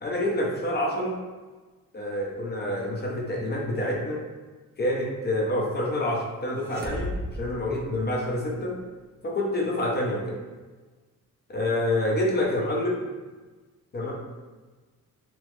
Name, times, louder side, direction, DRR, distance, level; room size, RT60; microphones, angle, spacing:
voice 1, 0.0-1.2 1.9-4.2 4.8-8.8 9.2-10.4 11.5-13.0 13.9-14.1, left 1 dB, 25° left, -2 dB, 0.7 m, -27 dB
sound 1, 6.6-8.6, equal, 30° right, 0.4 m, -35 dB
3.0 x 2.1 x 3.1 m, 1.3 s
cardioid pair, 105°, 37 cm